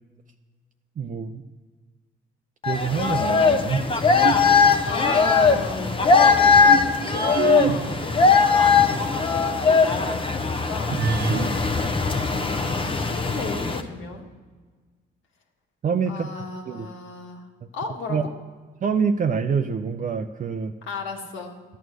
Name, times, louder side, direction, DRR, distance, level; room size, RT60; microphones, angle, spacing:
voice 1, 1.0-1.4 2.7-3.9 15.8-16.9 18.1-18.3 18.8-20.7, right 6 dB, 40° right, 6 dB, 0.6 m, -26 dB
sound 1, 2.6-13.8, left 5 dB, 25° left, 0.9 m, -20 dB
sound 2, 3.9-5.7 6.3-9.3 9.7-9.8 10.9-13.0, right 5 dB, 60° right, 1.1 m, -30 dB
voice 2, 4.9-11.4 12.3-14.3 16.1-17.5 17.7-18.2 20.8-21.5, left 4 dB, 80° left, 1 dB, 1.9 m, -35 dB
12.5 x 9.1 x 6.4 m, 1.4 s
cardioid pair, 90°, 20 cm